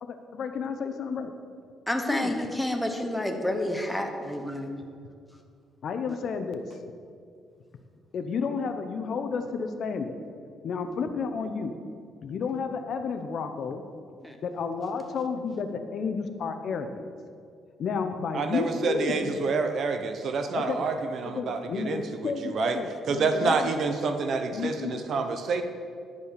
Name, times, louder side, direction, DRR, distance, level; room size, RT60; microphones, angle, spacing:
voice 1, 0.0-1.3 2.1-2.3 5.8-6.6 8.1-10.2 10.6-11.7 12.2-13.8 14.4-17.0 17.8-19.3 20.5-20.9 21.4-23.7 24.5-25.0, left 5 dB, 55° left, 8 dB, 0.8 m, -31 dB
voice 2, 1.9-4.8 14.2-14.4, left 1 dB, 5° left, 4 dB, 1.0 m, -29 dB
voice 3, 18.3-22.8 23.1-25.6, right 4 dB, 55° right, 7 dB, 0.8 m, -28 dB
11.0 x 5.3 x 6.8 m, 2.3 s
cardioid pair, 135°, 0 cm